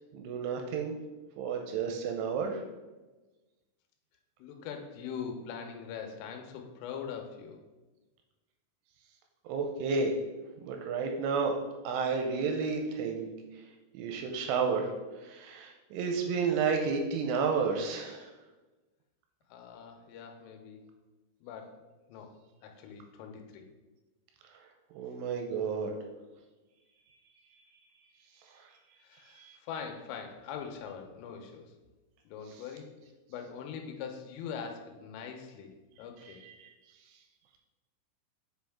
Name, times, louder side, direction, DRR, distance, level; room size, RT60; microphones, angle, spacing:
voice 1, 0.1-1.0 1.4-2.6 9.5-10.1 10.6-11.5 11.8-13.3 13.6-13.7 13.9-14.9 15.2-18.3 24.9-26.0 28.5-28.6 29.3-29.6 36.2-36.7, right 5 dB, 85° right, 3 dB, 3.0 m, -31 dB
voice 2, 4.4-7.6 19.5-20.8 21.4-21.8 22.1-22.3 22.6-23.6 29.0-31.7 32.3-32.9 33.3-35.7 36.0-36.4, left 7 dB, 85° left, 4 dB, 3.3 m, -42 dB
7.8 x 5.3 x 3.5 m, 1.2 s
omnidirectional pair, 5.8 m